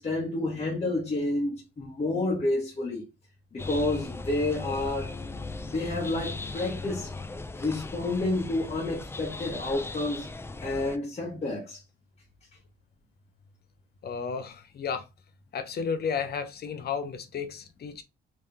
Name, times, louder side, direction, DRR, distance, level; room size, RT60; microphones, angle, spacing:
voice 1, 0.0-3.0 3.5-5.1 5.7-7.1 7.6-10.3 10.6-11.8, left 2 dB, 30° left, 1.3 m, -29 dB
sound 1, 3.6-11.0, left 3 dB, 10° left, 0.4 m, -38 dB
voice 2, 14.0-15.1 15.5-18.0, left 6 dB, 55° left, 0.8 m, -33 dB
3.4 x 3.3 x 2.8 m
cardioid pair, 90°, 20 cm